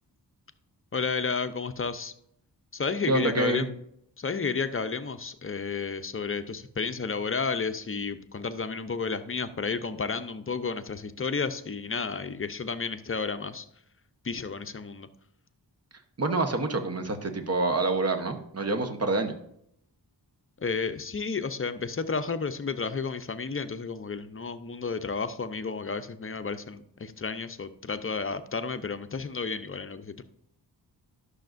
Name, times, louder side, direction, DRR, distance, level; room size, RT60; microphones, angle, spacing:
voice 1, 0.9-2.1 2.7-3.7 4.2-13.7 14.2-15.1 20.6-30.2, left 5 dB, 30° left, 10 dB, 0.6 m, -32 dB
voice 2, 3.1-3.6 16.2-19.4, right 2 dB, 35° right, 7 dB, 1.0 m, -27 dB
11.5 x 6.4 x 2.6 m, 0.72 s
cardioid pair, 65°, 42 cm